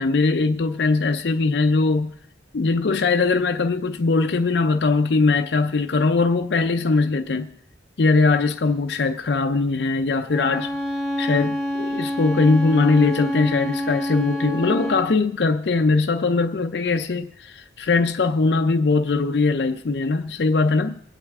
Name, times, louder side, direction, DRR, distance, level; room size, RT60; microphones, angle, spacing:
voice 1, 0.0-2.2 2.5-7.5 8.0-10.7 11.2-21.0, left 3 dB, 70° left, 0.5 m, -21 dB
Bowed string instrument, 10.3-15.1, equal, ahead, 2.2 m, -27 dB
23.0 x 8.6 x 3.6 m
head